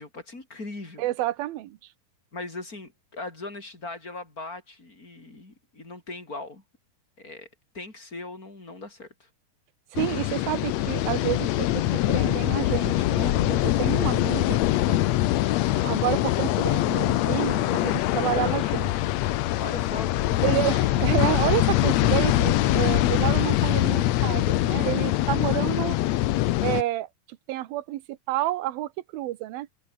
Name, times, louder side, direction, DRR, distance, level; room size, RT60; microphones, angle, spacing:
voice 1, 0.0-1.1 2.3-6.6 7.2-7.5 7.7-9.3 18.3-18.6 19.6-20.5 25.5-25.9, left 2 dB, 25° left, 5.6 m, -39 dB
voice 2, 1.0-1.8 9.9-14.6 14.9-15.1 15.8-18.9 20.4-26.0 26.6-27.1 27.5-29.7, right 15 dB, 80° right, 2.9 m, -29 dB
sound 1, 9.9-26.8, left 15 dB, 80° left, 1.5 m, -23 dB
omnidirectional pair, 4.2 m